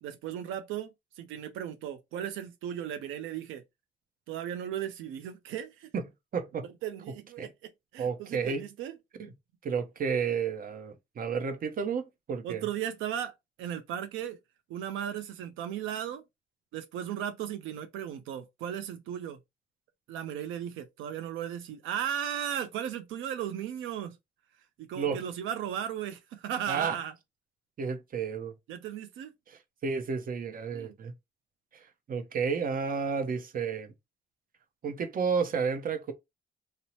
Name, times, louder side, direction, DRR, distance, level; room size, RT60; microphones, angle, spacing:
voice 1, 0.0-3.6 4.3-5.9 6.8-7.5 7.9-9.0 12.4-13.3 13.6-14.4 14.7-16.2 16.7-19.4 20.1-24.2 24.8-27.1 28.7-29.3 30.7-30.9, right 9 dB, 85° right, 0.4 m, -36 dB
voice 2, 6.3-6.7 7.4-7.5 8.0-8.6 9.2-9.3 9.6-12.6 25.0-25.2 26.7-27.0 27.8-28.5 29.5-31.1 31.7-33.9 34.8-36.1, right 6 dB, 45° right, 0.6 m, -31 dB
2.7 x 2.0 x 2.9 m
cardioid pair, 90°, 20 cm